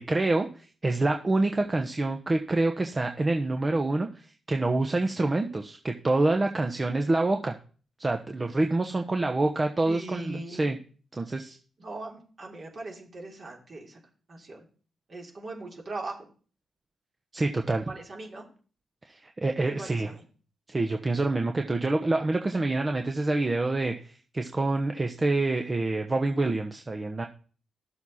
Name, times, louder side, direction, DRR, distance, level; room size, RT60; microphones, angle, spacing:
voice 1, 0.0-7.5 8.0-10.8 11.1-11.6 17.3-17.8 19.1-20.1 20.7-27.2, right 2 dB, 35° right, 5 dB, 1.0 m, -27 dB
voice 2, 9.8-10.7 11.8-14.0 14.3-14.6 15.1-16.3 17.9-18.5 19.6-20.2, right 2 dB, 55° right, -2 dB, 3.5 m, -40 dB
12.0 x 7.1 x 4.2 m, 0.41 s
hypercardioid pair, 45°, 0 cm